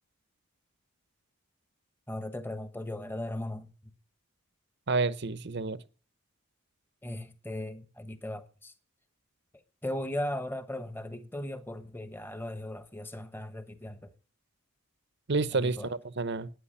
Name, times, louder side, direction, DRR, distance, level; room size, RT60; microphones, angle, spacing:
voice 1, 2.1-3.7 7.0-8.7 9.8-14.1 15.5-15.9, left 1 dB, 10° left, 1.1 m, -37 dB
voice 2, 4.9-5.8 15.3-16.5, right 3 dB, 50° right, 0.8 m, -29 dB
11.5 x 9.6 x 8.6 m
head